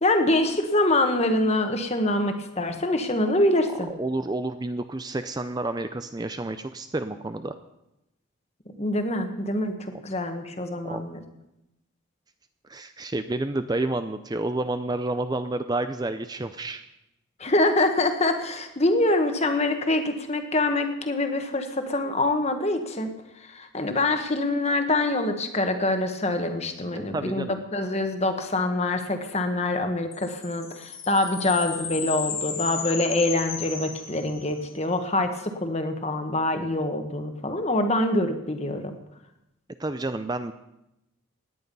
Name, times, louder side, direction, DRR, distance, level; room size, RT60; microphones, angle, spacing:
voice 1, 0.0-3.9 8.8-9.7 10.0-11.2 17.4-23.1 23.5-27.5 27.7-39.0, left 2 dB, 30° left, 6 dB, 1.4 m, -25 dB
voice 2, 4.0-7.5 9.9-10.0 10.8-11.0 12.7-16.8 26.9-27.6 39.8-40.5, right 2 dB, 20° right, 10 dB, 0.4 m, -30 dB
sound 1, 30.1-34.7, left 6 dB, 80° left, 3.8 m, -34 dB
17.5 x 10.5 x 5.4 m, 0.89 s
head